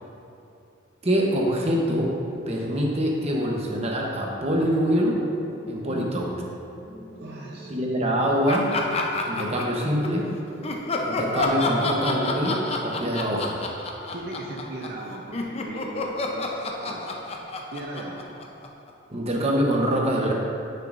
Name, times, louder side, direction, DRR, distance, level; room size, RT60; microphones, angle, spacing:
voice 1, 1.0-2.1 2.5-5.2 5.7-6.3 7.7-8.7 9.3-10.3 11.0-13.6 19.1-20.3, equal, 30° right, -1 dB, 0.9 m, -24 dB
sound 1, 4.3-13.3, right 1 dB, 65° left, 1.7 m, -43 dB
voice 2, 7.1-7.9 14.1-17.2 17.7-18.2, right 2 dB, 50° right, -2 dB, 0.6 m, -38 dB
Laughter, 8.5-10.2 10.6-15.0 15.3-18.9, left 2 dB, 30° left, 0.5 m, -29 dB
10.0 x 6.6 x 2.5 m, 2.7 s
head